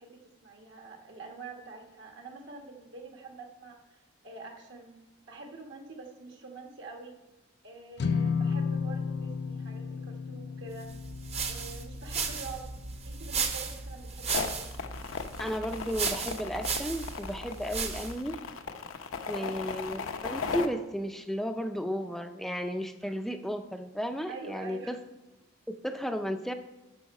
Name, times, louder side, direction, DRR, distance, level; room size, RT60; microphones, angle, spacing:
voice 1, 0.0-4.9 5.3-7.2 7.6-10.9 11.5-12.7 13.0-14.6 19.2-19.6 24.3-25.0, right 3 dB, 60° right, 2 dB, 1.4 m, -46 dB
sound 1, 8.0-14.4, left 5 dB, 55° left, 0.5 m, -34 dB
sound 2, 10.9-18.3, right 5 dB, 30° right, 0.8 m, -35 dB
sound 3, 14.3-20.7, left 5 dB, 85° left, 0.7 m, -36 dB
voice 2, 15.4-18.4 19.3-25.0 25.7-26.5, equal, ahead, 7 dB, 0.4 m, -34 dB
8.5 x 6.3 x 5.2 m, 1.0 s
head